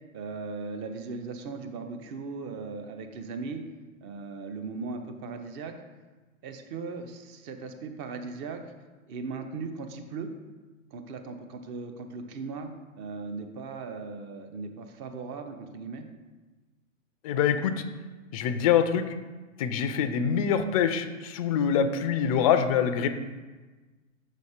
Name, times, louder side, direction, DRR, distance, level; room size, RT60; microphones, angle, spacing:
voice 1, 0.1-3.6 4.0-5.7 6.4-8.6 9.1-10.3 10.9-12.7 13.0-16.1, right 4 dB, 30° right, 6 dB, 0.7 m, -38 dB
voice 2, 17.2-17.8 18.3-19.1 19.6-23.1, left 8 dB, 30° left, 9 dB, 0.4 m, -25 dB
6.5 x 4.1 x 4.9 m, 1.3 s
hypercardioid pair, 125°, 40 cm